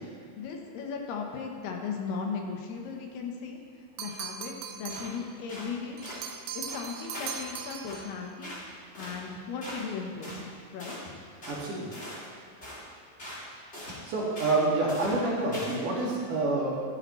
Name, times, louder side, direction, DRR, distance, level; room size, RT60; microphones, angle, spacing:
voice 1, 0.4-3.6 4.0-6.0 6.5-8.6 9.0-11.2, left 5 dB, 80° left, 1 dB, 3.1 m, -37 dB
sound 1, 4.0-5.2 6.0-8.2, right 7 dB, 85° right, 2.8 m, -39 dB
sound 2, 4.9-5.2 5.5-5.7 6.0-6.2 6.7-7.5 7.9-8.1 8.4-8.7 8.9-9.2 9.6-9.9 10.2-10.4 10.8-11.0 11.4-11.6 11.9-12.3 12.6-12.9 13.2-13.5 13.7-14.0 14.4-14.6 14.9-15.2 15.5-15.9, left 1 dB, 25° left, 1.9 m, -41 dB
voice 2, 11.4-11.9 14.1-16.8, right 2 dB, 60° right, -6 dB, 3.3 m, -27 dB
13.5 x 10.5 x 3.1 m, 2.3 s
omnidirectional pair, 4.6 m